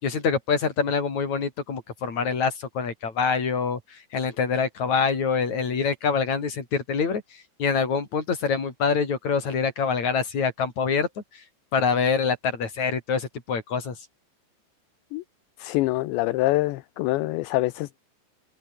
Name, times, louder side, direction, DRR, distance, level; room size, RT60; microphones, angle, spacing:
voice 1, 0.0-3.8 4.1-7.2 7.6-11.1 11.7-13.9, left 5 dB, 35° left, 5.4 m, -25 dB
voice 2, 15.6-18.0, left 18 dB, 80° left, 2.8 m, -25 dB
omnidirectional pair, 5.7 m